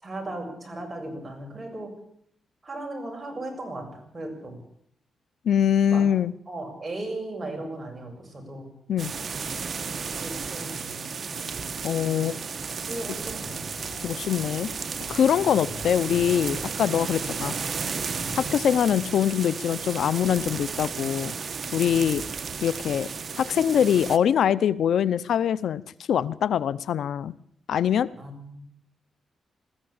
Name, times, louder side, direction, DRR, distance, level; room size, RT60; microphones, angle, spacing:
voice 1, 0.0-1.9 2.6-4.6 5.9-6.0 6.5-8.7 10.2-11.4 11.8-12.5 12.9-13.5 28.1-28.6, right 2 dB, 25° right, 3 dB, 7.3 m, -37 dB
voice 2, 5.5-6.3 8.9-9.1 11.8-12.4 14.0-14.7 15.1-17.5 18.3-21.3 21.7-22.2 22.6-23.1 23.4-25.8 26.1-27.3 27.7-28.1, left 9 dB, 80° left, 17 dB, 0.7 m, -23 dB
sound 1, 9.0-24.2, right 5 dB, 50° right, 1.3 m, -33 dB
sound 2, 13.2-18.7, left 4 dB, 50° left, 6.1 m, -45 dB
20.5 x 14.5 x 8.8 m, 0.67 s
cardioid pair, 95°, 0 cm